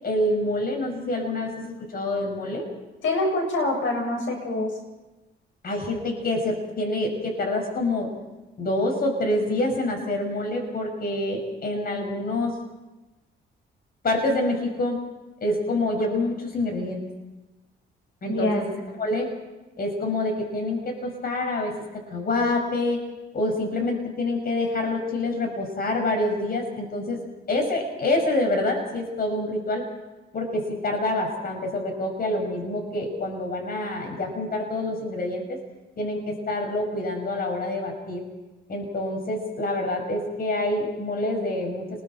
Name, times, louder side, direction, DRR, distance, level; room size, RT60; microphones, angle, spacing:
voice 1, 0.0-2.7 5.6-8.1 8.6-12.5 14.0-15.0 15.4-17.0 18.2-19.3 19.8-23.0 23.3-27.2 27.5-29.8 30.3-35.6 36.0-38.2 38.7-41.8, left 2 dB, 50° left, 3 dB, 6.4 m, -27 dB
voice 2, 3.0-4.7 18.3-18.6, left 2 dB, 75° left, 2 dB, 7.2 m, -25 dB
30.0 x 21.5 x 4.5 m, 1.1 s
cardioid pair, 90°, 20 cm